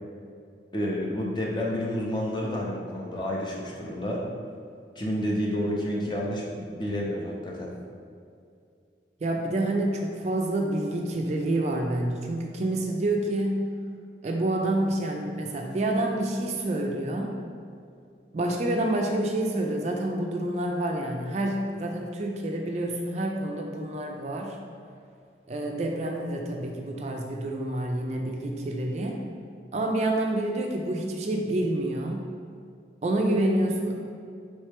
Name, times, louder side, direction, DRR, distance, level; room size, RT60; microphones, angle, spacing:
voice 1, 0.7-4.2 5.0-7.7, equal, 25° left, -3 dB, 0.5 m, -30 dB
voice 2, 9.2-13.6 14.2-17.4 18.3-24.6 25.5-29.2 29.7-32.2 33.0-34.1, right 1 dB, 35° right, 1 dB, 0.3 m, -28 dB
4.3 x 3.2 x 3.4 m, 2.4 s
head